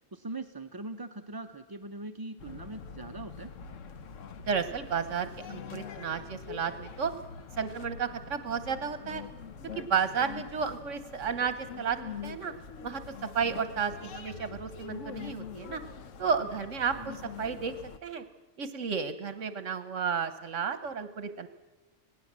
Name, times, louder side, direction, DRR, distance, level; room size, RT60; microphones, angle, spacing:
voice 1, 0.1-3.5 16.9-17.2, right 2 dB, 25° right, 7 dB, 0.5 m, -41 dB
sound 1, 2.4-18.0, left 6 dB, 75° left, 1.3 m, -44 dB
voice 2, 4.5-7.1 7.6-9.2 9.8-12.5 12.8-13.0 13.3-15.8 16.2-16.9 17.4-17.7 18.0-18.2 18.6-21.5, right 6 dB, 75° right, 11 dB, 1.3 m, -32 dB
26.0 x 18.5 x 7.4 m, 1.2 s
omnidirectional pair, 1.3 m